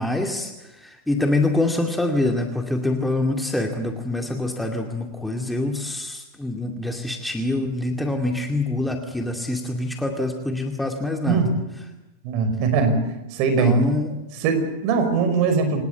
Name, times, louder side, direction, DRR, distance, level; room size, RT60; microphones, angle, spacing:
voice 1, 0.0-11.4 13.6-14.2, left 2 dB, 5° left, 3 dB, 2.4 m, -25 dB
voice 2, 12.2-13.0 13.3-13.8 14.4-15.8, right 5 dB, 45° right, 8 dB, 5.6 m, -20 dB
26.5 x 19.5 x 8.4 m, 0.97 s
figure-of-eight pair, 90°, 0 cm